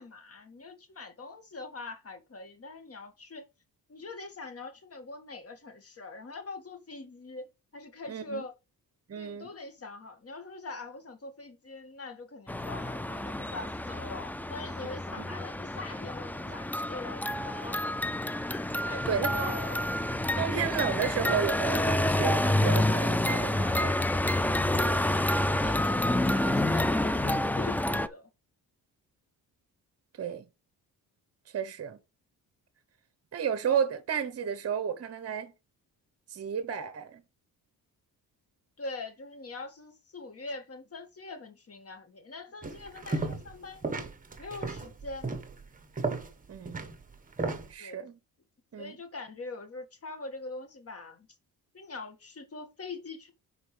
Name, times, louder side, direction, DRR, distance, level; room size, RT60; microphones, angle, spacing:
voice 1, 0.0-3.4 3.9-8.5 9.2-17.9 18.9-19.9 24.9-28.3 38.8-43.9 44.4-45.3 47.8-48.1 48.8-51.3 51.7-53.3, left 3 dB, 40° left, 2.0 m, -43 dB
voice 2, 8.1-8.4 9.1-9.5 15.2-15.3 18.4-18.5 19.1-19.5 20.4-24.0 30.2-30.5 31.5-32.0 33.3-35.5 36.3-37.2 46.5-46.9 47.7-48.2 48.7-48.9, right 8 dB, 40° right, 1.0 m, -32 dB
sound 1, 12.5-28.1, left 1 dB, 5° left, 0.4 m, -28 dB
sound 2, 42.6-43.6 43.8-47.7, right 3 dB, 20° right, 1.5 m, -34 dB
11.0 x 4.8 x 3.4 m
cardioid pair, 95°, 38 cm